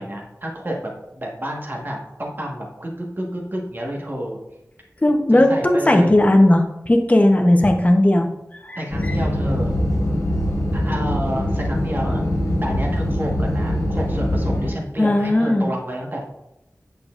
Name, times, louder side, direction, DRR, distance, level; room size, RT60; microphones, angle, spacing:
voice 1, 0.0-4.4 5.3-6.1 8.7-9.8 10.7-12.3 12.6-16.3, equal, 40° right, -1 dB, 1.4 m, -30 dB
voice 2, 5.0-8.3 8.6-8.8 15.0-15.7, left 1 dB, 25° left, 3 dB, 0.8 m, -16 dB
sound 1, 8.9-14.7, left 1 dB, 85° left, 1.2 m, -22 dB
8.5 x 6.5 x 2.5 m, 0.90 s
wide cardioid pair, 75°, 5 cm